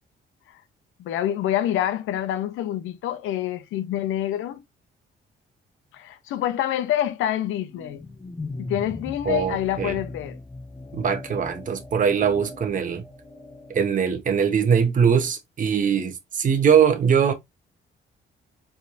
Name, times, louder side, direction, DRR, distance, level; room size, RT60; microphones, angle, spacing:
voice 1, 1.0-4.6 5.9-8.0 8.6-10.4, left 11 dB, 85° left, 0.7 m, -26 dB
sound 1, 7.7-14.0, left 2 dB, 15° left, 0.9 m, -39 dB
voice 2, 9.2-9.9 10.9-13.0 13.7-17.3, right 7 dB, 40° right, 0.9 m, -21 dB
4.4 x 3.5 x 2.6 m
cardioid pair, 90°, 20 cm